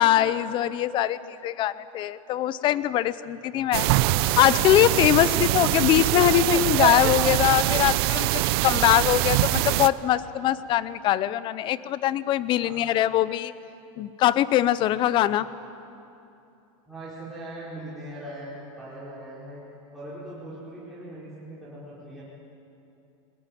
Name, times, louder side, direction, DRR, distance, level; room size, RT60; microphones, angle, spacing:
voice 1, 0.0-3.9 4.4-13.5 14.0-15.5, left 12 dB, 30° left, 17 dB, 0.7 m, -22 dB
voice 2, 3.5-3.8 5.2-5.6 12.6-12.8 16.9-19.6 19.9-22.2, right 1 dB, ahead, -10 dB, 4.8 m, -40 dB
sound 1, 3.7-9.9, right 17 dB, 50° right, 0.6 m, -23 dB
20.5 x 20.5 x 9.3 m, 2.8 s
supercardioid pair, 150°, 17 cm